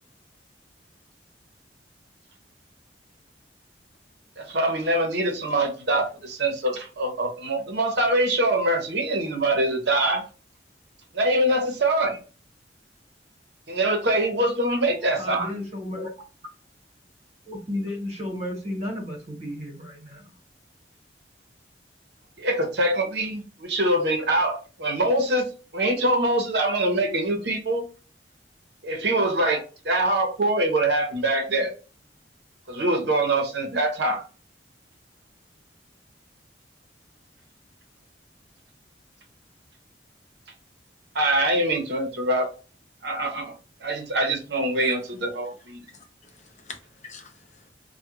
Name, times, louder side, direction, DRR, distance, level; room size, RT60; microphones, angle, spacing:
voice 1, 4.4-10.3 11.1-12.2 13.7-15.5 22.4-27.8 28.8-31.7 32.7-34.2 41.1-42.5 43.0-43.5 43.8-45.8, right 1 dB, 70° right, 0.7 m, -24 dB
voice 2, 14.9-16.1 17.5-20.3, left 1 dB, 40° right, 1.0 m, -33 dB
voice 3, 45.9-47.7, left 4 dB, 40° left, 0.5 m, -45 dB
2.2 x 2.1 x 3.0 m
head